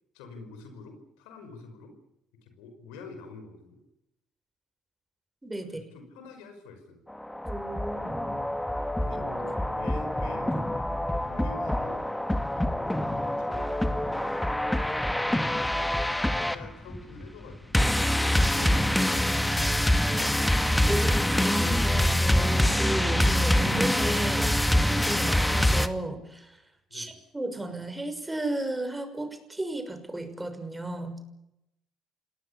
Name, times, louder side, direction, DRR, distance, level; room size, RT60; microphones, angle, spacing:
voice 1, 0.1-2.0 2.4-3.8 5.7-7.0 9.0-12.1 12.9-14.4 15.7-15.9 16.3-17.9 18.3-19.6 26.9-27.2, left 3 dB, 85° left, 6 dB, 5.5 m, -46 dB
voice 2, 5.4-5.9 7.4-8.4 20.6-26.6 26.9-31.2, right 1 dB, 15° right, 8 dB, 6.2 m, -34 dB
sound 1, 7.1-25.9, left 1 dB, 10° left, 2.0 m, -25 dB
26.5 x 19.0 x 8.6 m, 0.85 s
supercardioid pair, 60°, 0 cm